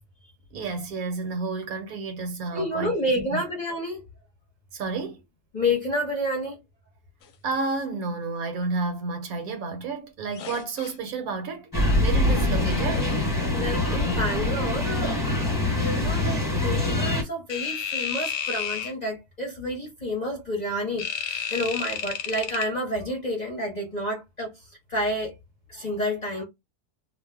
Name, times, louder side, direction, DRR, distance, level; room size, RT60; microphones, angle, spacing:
voice 1, 0.5-3.4 4.7-5.2 7.4-13.2, right 4 dB, 70° right, 1.2 m, -31 dB
voice 2, 2.5-4.0 5.5-6.6 13.5-25.4 25.7-26.4, left 1 dB, 35° left, 0.8 m, -30 dB
sound 1, 10.3-10.9 12.3-13.2 17.5-18.9 21.0-22.6, left 8 dB, 70° left, 0.9 m, -32 dB
sound 2, 11.7-17.2, left 2 dB, 15° left, 1.1 m, -24 dB
2.6 x 2.2 x 3.4 m
omnidirectional pair, 1.6 m